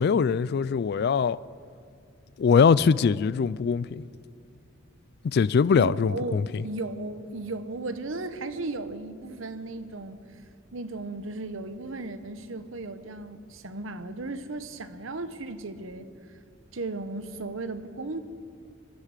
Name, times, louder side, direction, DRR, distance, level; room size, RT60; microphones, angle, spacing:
voice 1, 0.0-1.4 2.4-4.0 5.2-6.6, left 6 dB, 50° left, 0.3 m, -22 dB
voice 2, 5.7-10.4 10.7-16.1 16.7-18.2, right 2 dB, 70° right, 0.9 m, -35 dB
23.0 x 8.2 x 7.4 m
head